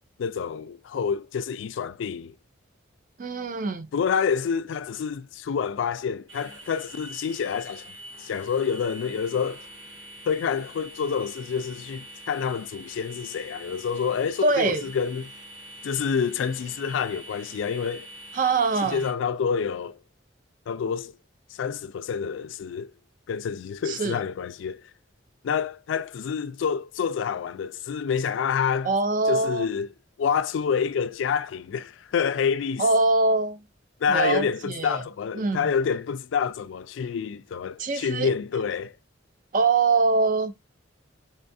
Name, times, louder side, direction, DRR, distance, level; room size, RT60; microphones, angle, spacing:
voice 1, 0.2-2.3 3.9-9.7 10.3-15.3 15.8-18.1 18.8-20.0 20.7-21.1 21.5-22.9 23.3-24.8 25.4-28.9 29.3-29.9 30.2-32.9 34.0-39.0, left 6 dB, 75° left, 0.3 m, -28 dB
voice 2, 3.2-3.9 14.4-14.9 18.3-19.0 23.9-24.2 28.8-29.7 32.8-33.6 34.1-35.0 35.4-35.7 37.8-38.3 39.5-40.5, right 3 dB, 40° right, 0.4 m, -23 dB
sound 1, 6.3-19.1, right 1 dB, 65° right, 0.9 m, -45 dB
5.4 x 2.3 x 2.6 m
head